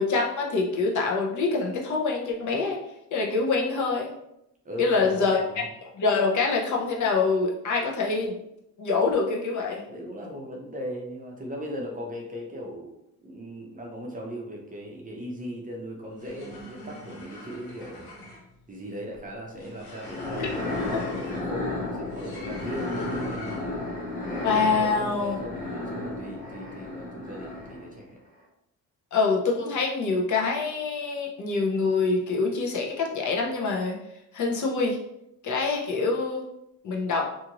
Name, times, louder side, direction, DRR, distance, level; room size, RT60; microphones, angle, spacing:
voice 1, 0.0-2.8 3.1-4.1 4.8-5.4 5.8-8.4 8.8-9.8 20.4-20.5 20.9-21.0 24.4-25.4 29.1-34.0 34.3-35.0 35.4-36.5 36.8-37.3, left 4 dB, 55° left, -1 dB, 0.8 m, -25 dB
voice 2, 4.6-5.7 9.9-12.9 13.2-18.1 18.7-23.9 24.7-28.2, equal, 25° right, 0 dB, 0.6 m, -38 dB
sound 1, 16.0-23.9, left 1 dB, 80° left, 1.0 m, -43 dB
sound 2, 19.9-28.0, left 2 dB, 25° left, 1.0 m, -33 dB
2.7 x 2.5 x 2.9 m, 0.81 s
cardioid pair, 100°, 36 cm